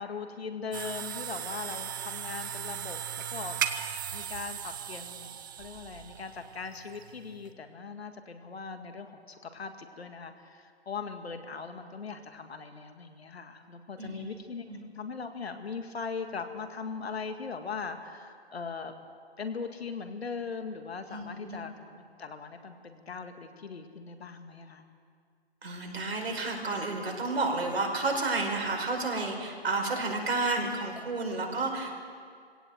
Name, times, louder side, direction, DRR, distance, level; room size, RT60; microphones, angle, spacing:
voice 1, 0.0-3.7 4.1-5.3 5.6-18.9 19.4-24.8, left 5 dB, 70° left, 7 dB, 2.0 m, -40 dB
sound 1, 0.7-7.5, right 9 dB, 20° right, 0.6 m, -37 dB
voice 2, 14.0-14.3 14.7-14.8 21.1-21.6 25.6-31.9, right 3 dB, 70° right, 1 dB, 5.0 m, -31 dB
22.0 x 17.0 x 7.9 m, 2.2 s
hypercardioid pair, 155°, 32 cm